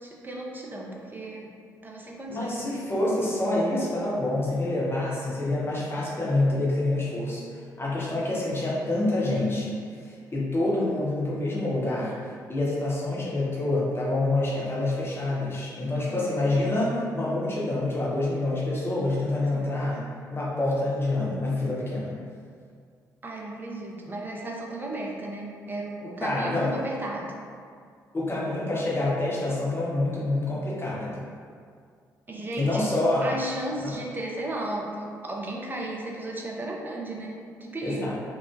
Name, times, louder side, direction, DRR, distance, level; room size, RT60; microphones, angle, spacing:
voice 1, 0.0-1.5 1.8-2.8 15.9-16.3 19.5-19.7 23.2-27.3 32.3-32.9 33.2-38.2, right 1 dB, 20° right, -2 dB, 0.5 m, -35 dB
voice 2, 2.3-9.8 10.0-12.1 12.5-22.2 26.2-26.7 28.1-31.2 32.6-33.3 33.8-34.0 37.8-38.1, left 2 dB, 25° left, -6 dB, 0.8 m, -27 dB
3.0 x 2.0 x 2.3 m, 2.1 s
figure-of-eight pair, 40°, 10 cm